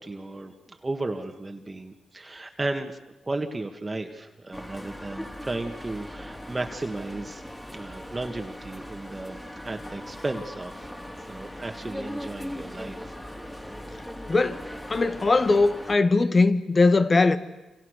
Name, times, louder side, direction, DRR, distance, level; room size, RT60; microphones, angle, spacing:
voice 1, 0.0-2.9 3.2-7.4 7.7-10.9 11.3-13.2, right 2 dB, 25° right, 1.9 m, -34 dB
sound 1, 4.5-16.0, equal, 10° left, 3.8 m, -39 dB
voice 2, 14.3-17.4, left 3 dB, 35° left, 1.8 m, -20 dB
28.5 x 26.5 x 6.7 m
cardioid pair, 75°, 0 cm